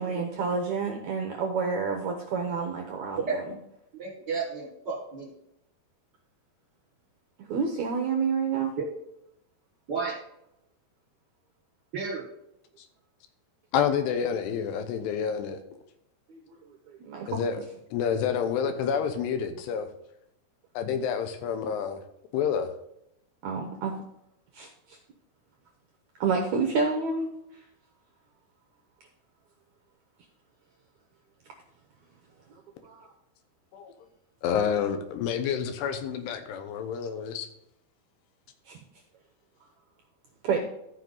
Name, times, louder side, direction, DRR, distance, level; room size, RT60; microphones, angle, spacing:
voice 1, 0.0-3.4 7.5-8.7 16.3-16.6 17.0-17.4 23.4-23.9 24.5-25.0 26.2-27.3 32.8-33.1 38.7-38.8 40.4-40.6, right 5 dB, 85° right, 2 dB, 1.6 m, -29 dB
voice 2, 4.0-5.3 8.8-8.9 9.9-10.1 11.9-12.2, right 5 dB, 45° right, -3 dB, 1.5 m, -32 dB
voice 3, 13.7-15.6 17.3-17.6 17.9-19.9 20.7-22.0 22.3-22.7 33.7-33.9 34.4-37.5, left 7 dB, 85° left, 8 dB, 3.1 m, -28 dB
14.5 x 5.3 x 4.0 m, 0.80 s
omnidirectional pair, 4.8 m